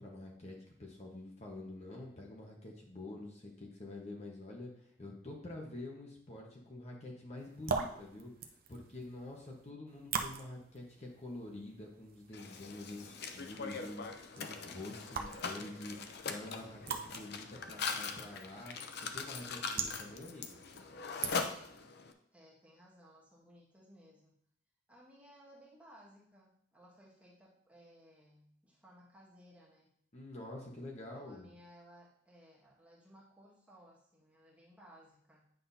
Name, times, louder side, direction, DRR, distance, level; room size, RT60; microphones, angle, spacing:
voice 1, 0.0-8.3 8.7-20.6 30.1-31.5, left 2 dB, 35° left, -1 dB, 1.2 m, -47 dB
sound 1, 7.4-21.8, right 5 dB, 55° right, 0.7 m, -44 dB
Mechanisms, 12.3-22.1, left 5 dB, 60° left, 0.6 m, -42 dB
voice 2, 22.3-24.4 24.9-29.9 31.1-35.5, equal, 5° right, -5 dB, 1.7 m, -60 dB
9.3 x 6.0 x 2.8 m, 0.68 s
head